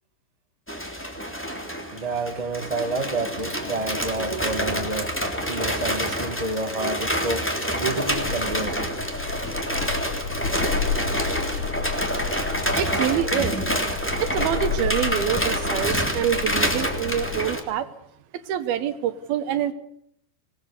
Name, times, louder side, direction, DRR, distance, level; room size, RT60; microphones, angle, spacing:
sound 1, 0.7-17.6, equal, 5° left, 2.4 m, -27 dB
voice 1, 1.9-9.0, right 2 dB, 25° right, 5 dB, 0.8 m, -29 dB
sound 2, 8.1-17.4, left 7 dB, 60° left, 2.8 m, -32 dB
voice 2, 12.8-13.6 14.2-17.9 18.5-19.7, right 9 dB, 70° right, 11 dB, 2.8 m, -26 dB
26.5 x 20.0 x 6.8 m, 0.72 s
omnidirectional pair, 5.0 m